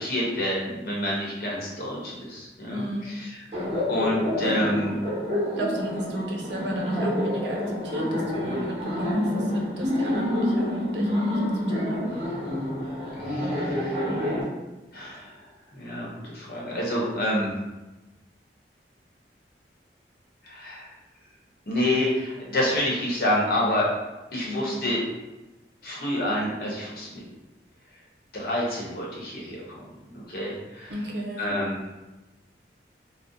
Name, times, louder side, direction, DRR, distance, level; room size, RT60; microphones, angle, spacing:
voice 1, 0.0-3.3 3.9-5.0 13.2-14.0 14.9-15.3 15.7-17.5 20.4-20.9 21.7-23.9 24.3-25.0 25.8-27.2 28.3-29.8 30.0-30.9 31.4-31.8, left 1 dB, 55° left, -4 dB, 0.8 m, -28 dB
voice 2, 2.6-3.1 4.4-4.8 5.6-12.1 24.4-24.7 30.9-31.6, right 1 dB, 80° right, 0 dB, 0.6 m, -34 dB
Laughter, 3.5-14.4, left 1 dB, 30° right, 1.0 m, -27 dB
2.6 x 2.0 x 3.7 m, 1.1 s
head